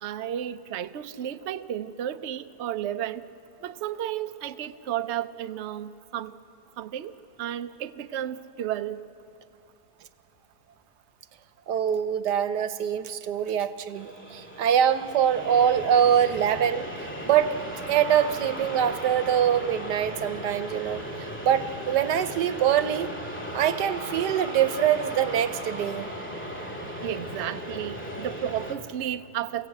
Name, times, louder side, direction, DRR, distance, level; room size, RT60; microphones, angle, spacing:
voice 1, 0.0-3.2 3.6-6.3 6.8-7.1 7.4-9.0 27.0-29.7, right 11 dB, 55° right, 10 dB, 0.8 m, -32 dB
voice 2, 11.7-17.6 17.9-21.0 21.4-23.1 23.5-26.1, right 9 dB, 85° right, 12 dB, 1.4 m, -24 dB
sound 1, 13.9-28.8, equal, 5° left, 2.3 m, -37 dB
29.0 x 16.5 x 8.2 m, 2.5 s
omnidirectional pair, 1.7 m